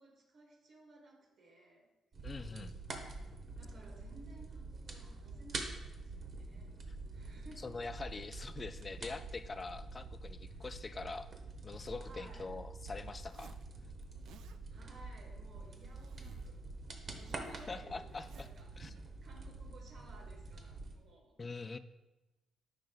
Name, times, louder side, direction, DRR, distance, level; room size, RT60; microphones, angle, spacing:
voice 1, 0.0-1.9 3.6-6.7 7.1-7.6 10.5-10.6 12.0-12.5 14.7-16.6 17.0-18.8 19.2-21.3, right 2 dB, 65° right, 0 dB, 1.4 m, -58 dB
sound 1, 2.1-21.0, right 3 dB, 45° right, 0.9 m, -46 dB
voice 2, 2.2-2.7 7.6-11.3 11.6-13.6 17.7-18.5 18.8-18.9 21.4-21.8, left 3 dB, 30° left, 11 dB, 0.3 m, -44 dB
Zipper (clothing), 13.1-13.7 14.0-14.6 15.4-16.6 16.9-18.6, right 9 dB, 85° right, 0.3 m, -60 dB
10.5 x 5.0 x 2.3 m, 1.0 s
cardioid pair, 105°, 0 cm